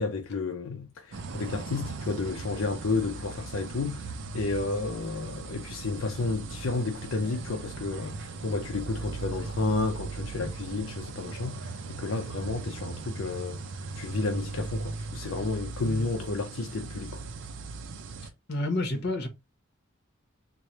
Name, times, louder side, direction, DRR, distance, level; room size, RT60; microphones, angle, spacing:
voice 1, 0.0-13.6 14.0-17.2, left 3 dB, 75° left, 0.5 m, -32 dB
sound 1, 1.1-18.3, right 3 dB, 60° right, 0.5 m, -38 dB
voice 2, 18.5-19.3, left 2 dB, 55° left, 1.0 m, -29 dB
3.2 x 2.2 x 4.0 m
head